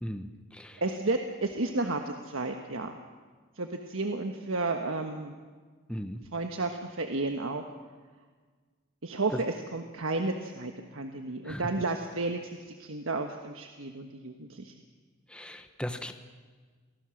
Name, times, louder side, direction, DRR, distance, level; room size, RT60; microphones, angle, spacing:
voice 1, 0.0-0.8 5.9-6.2 9.3-9.4 11.4-11.7 15.3-16.1, equal, 5° left, 7 dB, 1.0 m, -37 dB
voice 2, 0.8-2.9 3.6-5.4 6.3-7.6 9.0-12.4 12.8-14.7, right 2 dB, 85° right, 5 dB, 1.4 m, -32 dB
27.5 x 18.5 x 6.5 m, 1.5 s
head